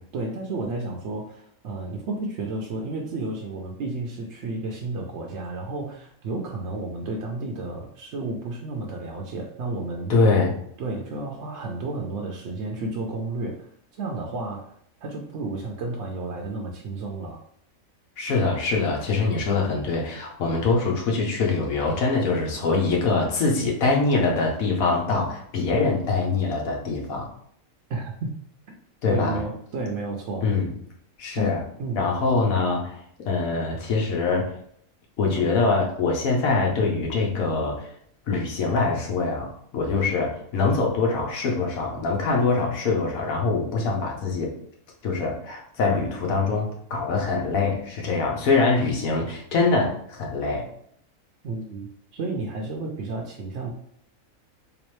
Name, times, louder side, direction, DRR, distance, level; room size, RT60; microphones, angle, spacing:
voice 1, 0.1-10.2 10.8-14.7 15.0-17.4 27.9-28.3 29.1-30.5 31.3-31.5 31.8-32.0 35.4-35.5 51.4-53.7, right 2 dB, 65° right, -1 dB, 0.8 m, -32 dB
voice 2, 10.1-10.5 18.2-27.3 29.0-29.4 30.4-30.7 31.2-31.6 31.9-33.0 33.2-34.5 35.2-37.9 38.3-44.5 45.0-50.7, left 3 dB, 80° left, 0 dB, 1.3 m, -24 dB
3.5 x 3.0 x 3.1 m, 0.66 s
omnidirectional pair, 1.4 m